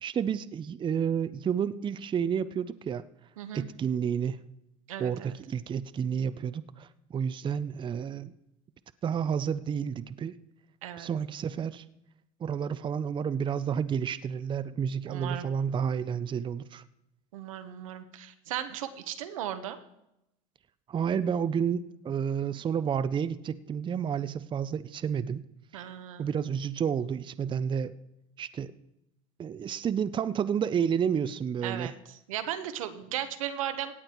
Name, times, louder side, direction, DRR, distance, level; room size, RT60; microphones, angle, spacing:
voice 1, 0.0-3.0 3.5-4.4 5.0-8.3 9.0-10.4 11.0-11.8 12.4-16.8 20.9-25.4 25.8-25.9 26.2-27.9 28.4-28.7 29.4-31.9, right 7 dB, 30° right, 14 dB, 0.6 m, -30 dB
voice 2, 3.4-3.7 4.9-5.4 10.8-11.1 15.1-15.6 17.3-19.8 25.7-26.3 31.6-33.9, right 11 dB, 90° right, 9 dB, 1.2 m, -36 dB
17.0 x 8.9 x 4.5 m, 0.84 s
supercardioid pair, 95°, 17 cm